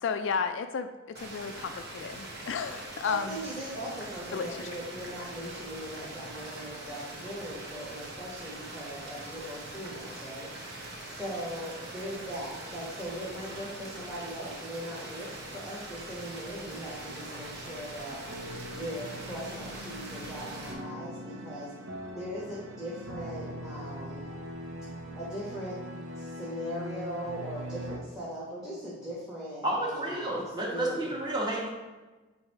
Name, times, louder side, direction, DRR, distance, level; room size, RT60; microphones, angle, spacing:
voice 1, 0.0-3.4 4.3-4.7, left 6 dB, 65° left, 9 dB, 0.3 m, -33 dB
sound 1, 1.1-20.7, right 1 dB, 55° right, 1.1 m, -42 dB
voice 2, 3.0-10.5 11.0-18.2 18.7-21.7 22.2-24.3 25.0-25.8 26.1-30.4 30.7-31.1, equal, 5° right, -7 dB, 1.1 m, -39 dB
sound 2, 16.7-28.0, equal, 85° right, 1.1 m, -42 dB
voice 3, 29.6-31.7, right 1 dB, 20° right, -3 dB, 1.3 m, -31 dB
8.1 x 2.7 x 4.6 m, 1.2 s
head